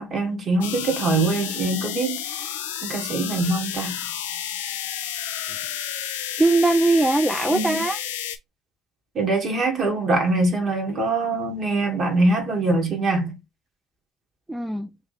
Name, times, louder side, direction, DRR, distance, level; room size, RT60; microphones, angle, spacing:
voice 1, 0.0-2.5 2.8-3.9 7.5-7.8 9.2-13.3, right 2 dB, 40° right, 1.9 m, -23 dB
sound 1, 0.6-8.4, left 10 dB, 80° left, 0.6 m, -31 dB
voice 2, 6.4-8.0 14.5-14.9, right 2 dB, 5° right, 0.5 m, -20 dB
3.7 x 3.0 x 4.0 m
hypercardioid pair, 60°, 0 cm